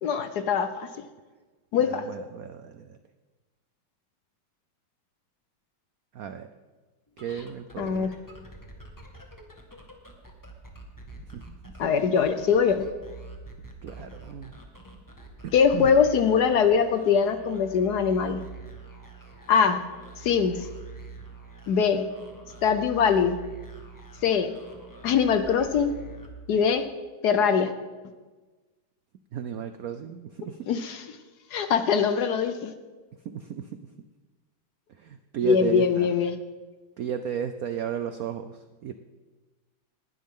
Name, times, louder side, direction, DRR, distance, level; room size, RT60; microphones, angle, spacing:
voice 1, 0.0-0.9 1.7-2.0 7.8-8.1 11.8-12.8 15.5-18.4 19.5-19.8 20.2-20.7 21.7-22.1 22.6-23.3 24.2-24.5 25.0-25.9 26.5-26.8 27.2-27.7 30.7-31.1 31.5-32.7 35.4-36.4, left 6 dB, 65° left, 10 dB, 1.1 m, -22 dB
voice 2, 1.8-2.8 6.1-6.5 7.2-8.1 11.3-11.4 13.8-14.5 15.4-15.9 29.3-30.5 33.3-33.7 35.0-36.1 37.0-38.5 38.8-38.9, right 8 dB, 75° right, 9 dB, 0.8 m, -34 dB
sound 1, 7.1-26.8, right 3 dB, 10° left, 1.4 m, -45 dB
20.0 x 11.5 x 3.7 m, 1.3 s
omnidirectional pair, 2.2 m